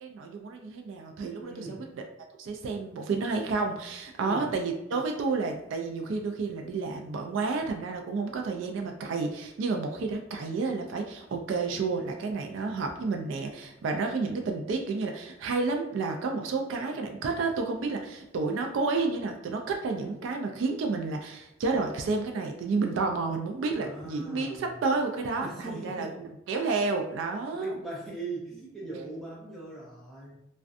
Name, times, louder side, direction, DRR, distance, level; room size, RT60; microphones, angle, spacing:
voice 1, 0.0-2.0 2.4-27.7, right 4 dB, 65° right, 4 dB, 0.3 m, -30 dB
voice 2, 1.4-1.9 4.2-4.5 23.8-24.7 25.4-26.1 27.5-30.4, right 2 dB, ahead, -7 dB, 0.7 m, -40 dB
2.4 x 2.2 x 2.4 m, 0.86 s
head